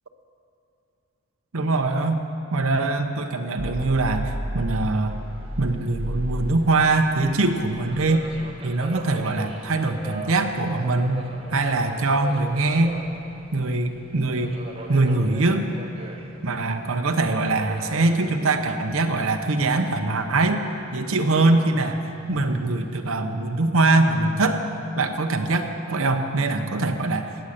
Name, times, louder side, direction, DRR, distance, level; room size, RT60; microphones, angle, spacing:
voice 1, 1.5-2.2 2.5-5.2 5.6-8.3 8.6-13.0 13.5-14.5 14.9-15.7 16.4-20.6 20.9-22.0 22.3-24.6 25.0-27.3, right 2 dB, 75° right, 5 dB, 0.8 m, -22 dB
sound 1, 3.6-19.5, equal, 40° right, 4.1 m, -37 dB
Subway metro underground, 4.8-23.2, right 2 dB, 25° right, 1.0 m, -43 dB
17.0 x 8.9 x 6.6 m, 2.8 s
head